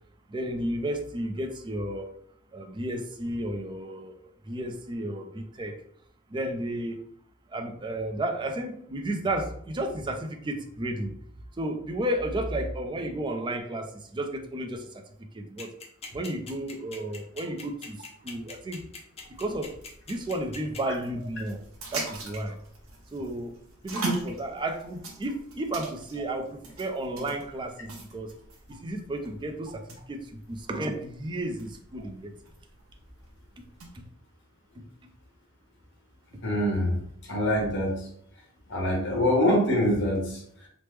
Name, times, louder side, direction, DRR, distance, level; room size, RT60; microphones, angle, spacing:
voice 1, 0.3-2.1 2.5-4.2 4.4-5.7 6.3-7.0 7.5-11.1 11.6-15.0 15.3-15.7 16.1-18.8 19.4-19.7 20.1-21.6 21.9-22.6 23.1-23.6 23.8-28.3 28.7-32.3 33.6-33.7 33.9-34.1, right 1 dB, 20° right, 4 dB, 0.4 m, -32 dB
sound 1, 15.6-20.8, left 4 dB, 30° left, 0.6 m, -41 dB
sound 2, 19.2-34.0, right 2 dB, 80° right, 0.7 m, -41 dB
voice 2, 36.4-36.9 37.3-38.0 38.7-40.7, left 1 dB, 60° left, -1 dB, 1.0 m, -24 dB
3.1 x 2.1 x 3.2 m, 0.67 s
head